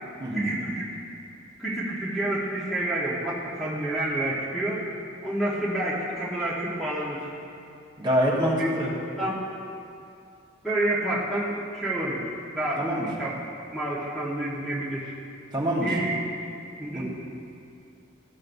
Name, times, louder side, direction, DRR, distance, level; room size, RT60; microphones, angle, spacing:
voice 1, 0.3-0.9 1.6-4.8 5.2-7.3 8.6-8.7 9.2-9.3 10.6-12.9 13.2-13.3 13.7-15.1 15.8-16.1 16.8-17.0, right 1 dB, ahead, -8 dB, 1.0 m, -28 dB
voice 2, 8.0-8.9 12.8-13.1 15.5-15.9 16.9-17.0, equal, 20° right, -5 dB, 1.3 m, -25 dB
13.5 x 6.3 x 2.6 m, 2.5 s
head